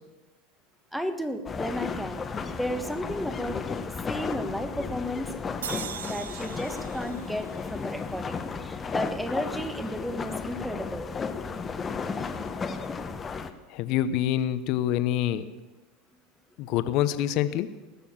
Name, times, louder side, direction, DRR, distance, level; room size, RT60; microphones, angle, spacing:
voice 1, 0.9-5.3 6.1-11.1, equal, ahead, 9 dB, 1.3 m, -34 dB
sound 1, 1.5-13.5, left 5 dB, 25° left, 1.1 m, -34 dB
sound 2, 5.6-8.9, right 9 dB, 85° right, 0.5 m, -41 dB
voice 2, 13.7-15.5 16.6-17.7, left 11 dB, 55° left, 12 dB, 0.9 m, -26 dB
19.5 x 7.0 x 7.3 m, 1.2 s
hypercardioid pair, 100°, 0 cm